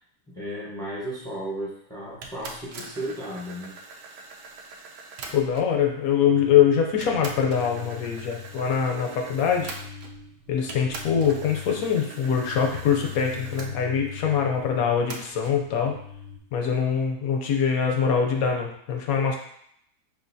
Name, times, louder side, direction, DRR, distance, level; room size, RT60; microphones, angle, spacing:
voice 1, 0.3-3.7, right 1 dB, 5° left, -7 dB, 0.4 m, -34 dB
sound 1, 2.2-5.8 6.5-6.6 7.0-10.3 10.7-13.7 15.1-15.6, right 3 dB, 75° right, 0.6 m, -42 dB
voice 2, 5.3-9.7 10.5-15.9 16.5-19.3, left 7 dB, 70° left, 2 dB, 0.9 m, -23 dB
sound 2, 6.3-16.4, left 7 dB, 45° right, 1.1 m, -42 dB
5.2 x 2.6 x 2.6 m, 0.69 s
omnidirectional pair, 1.8 m